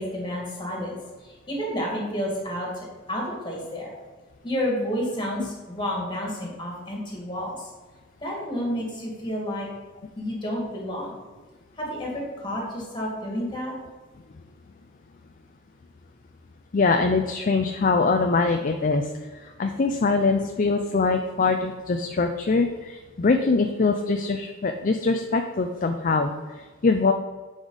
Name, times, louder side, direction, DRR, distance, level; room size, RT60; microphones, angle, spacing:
voice 1, 0.0-3.9 4.4-7.7 8.2-9.7 10.2-11.2 11.8-13.7, equal, 25° left, -2 dB, 2.1 m, -30 dB
voice 2, 16.7-27.1, left 4 dB, 40° left, 5 dB, 0.4 m, -23 dB
9.6 x 5.1 x 4.0 m, 1.3 s
head